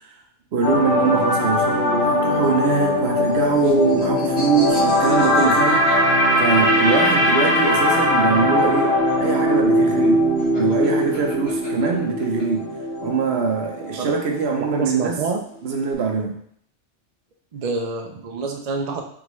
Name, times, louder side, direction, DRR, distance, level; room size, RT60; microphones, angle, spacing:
voice 1, 0.5-5.8 6.4-10.2 10.6-12.7 13.0-15.2 15.6-16.4, right 5 dB, 65° right, 1 dB, 0.9 m, -22 dB
sound 1, 0.6-14.8 15.1-15.3, left 1 dB, 65° left, 1.2 m, -20 dB
sound 2, 2.9-7.0 8.2-12.4, left 1 dB, 50° left, 1.5 m, -38 dB
voice 2, 14.5-15.4 17.5-19.0, right 4 dB, 50° right, 2 dB, 0.5 m, -26 dB
3.7 x 3.6 x 3.0 m, 0.65 s
omnidirectional pair, 1.2 m